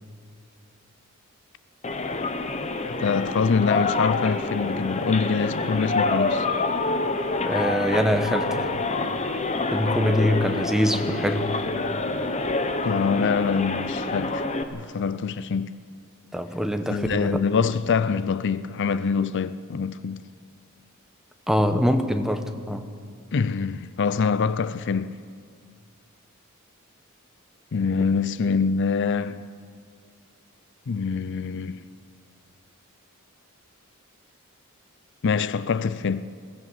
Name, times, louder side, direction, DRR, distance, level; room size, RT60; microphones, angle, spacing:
sound 1, 1.8-14.6, left 3 dB, 30° left, 1.0 m, -27 dB
voice 1, 3.0-6.5 12.8-15.8 16.9-20.3 23.3-25.2 27.7-29.4 30.9-31.8 35.2-36.3, left 5 dB, 55° left, 0.5 m, -25 dB
voice 2, 7.4-8.7 9.7-11.7 16.3-17.4 21.5-22.9, equal, ahead, 1.0 m, -24 dB
22.0 x 16.5 x 7.3 m
head